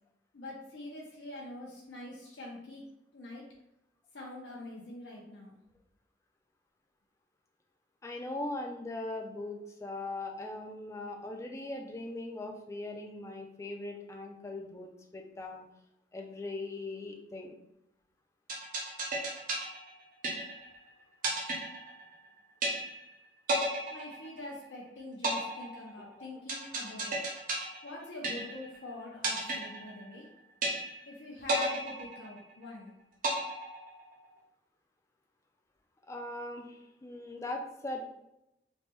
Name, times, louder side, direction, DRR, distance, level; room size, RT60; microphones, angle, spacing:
voice 1, 0.3-2.8 3.1-3.4 4.1-5.6 23.9-27.2 27.8-30.2 31.0-32.9, left 2 dB, 85° left, -4 dB, 0.6 m, -44 dB
voice 2, 8.0-15.7 16.1-17.6 26.1-26.3 36.1-38.0, left 2 dB, 15° left, 2 dB, 0.3 m, -40 dB
sound 1, 18.5-20.8 21.2-22.3 22.6-23.2 23.5-24.8 25.2-28.8 29.2-30.3 30.6-31.2 31.5-32.8 33.2-34.3, right 2 dB, 50° right, 0.6 m, -33 dB
3.2 x 2.1 x 2.9 m, 0.86 s
head